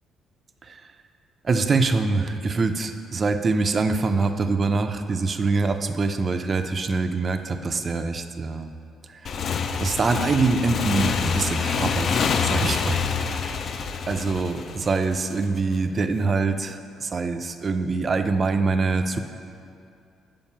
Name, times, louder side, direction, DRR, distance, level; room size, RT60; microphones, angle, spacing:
voice 1, 1.4-8.7 9.8-13.6 14.1-19.2, right 3 dB, 30° right, 8 dB, 0.4 m, -24 dB
Motorcycle / Engine, 9.2-15.6, left 6 dB, 40° left, 0.3 m, -26 dB
7.2 x 5.2 x 5.5 m, 2.5 s
cardioid pair, 160°, 0 cm